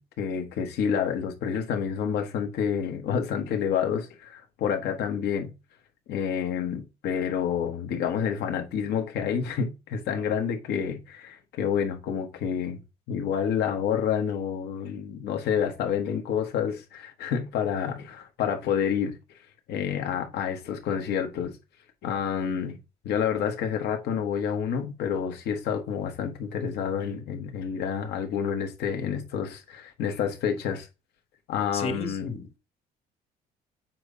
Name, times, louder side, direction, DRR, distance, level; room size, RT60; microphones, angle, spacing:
voice 1, 0.0-5.5 6.1-12.8 13.1-19.2 19.7-21.6 22.0-22.8 23.0-30.9 31.5-32.3, left 7 dB, 75° left, 1.4 m, -29 dB
voice 2, 31.7-32.6, left 4 dB, 35° left, 1.2 m, -33 dB
7.5 x 2.7 x 5.0 m
cardioid pair, 110°, 17 cm